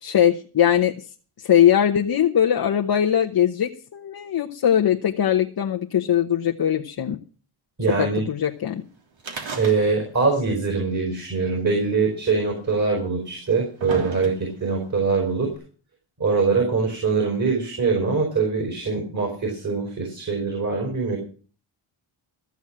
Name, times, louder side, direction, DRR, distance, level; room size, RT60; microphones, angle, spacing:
voice 1, 0.0-1.1 1.4-7.2 8.0-8.8, left 9 dB, 50° left, 2 dB, 1.0 m, -21 dB
voice 2, 7.8-8.3 9.6-15.5 16.2-21.2, right 4 dB, 35° right, 3 dB, 4.9 m, -23 dB
sound 1, 9.2-10.2 10.5-10.6 11.6-11.7 12.6-12.7 13.3-14.7 15.5-15.6, right 4 dB, 60° right, 3.1 m, -34 dB
14.5 x 7.3 x 7.3 m, 0.40 s
cardioid pair, 100°, 50 cm